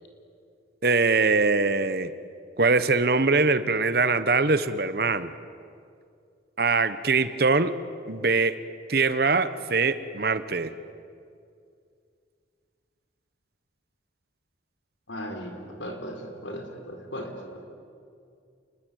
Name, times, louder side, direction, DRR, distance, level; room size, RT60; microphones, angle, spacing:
voice 1, 0.8-2.1 2.6-5.3 6.6-7.8 8.1-8.6 8.9-10.7, right 4 dB, 55° right, 13 dB, 1.0 m, -23 dB
voice 2, 15.1-17.6, equal, 85° left, 4 dB, 4.5 m, -37 dB
29.5 x 21.5 x 9.4 m, 2.4 s
head